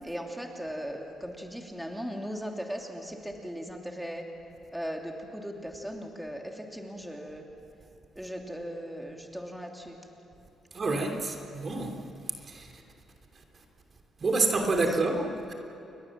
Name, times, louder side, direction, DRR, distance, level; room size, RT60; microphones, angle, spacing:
voice 1, 0.0-4.2 4.7-7.4 8.2-10.0 14.9-15.1, equal, ahead, 1 dB, 2.9 m, -38 dB
voice 2, 10.7-11.9 12.5-12.7 14.2-15.5, right 3 dB, 40° right, 3 dB, 3.0 m, -28 dB
29.5 x 22.0 x 7.5 m, 2.8 s
cardioid pair, 90°, 0 cm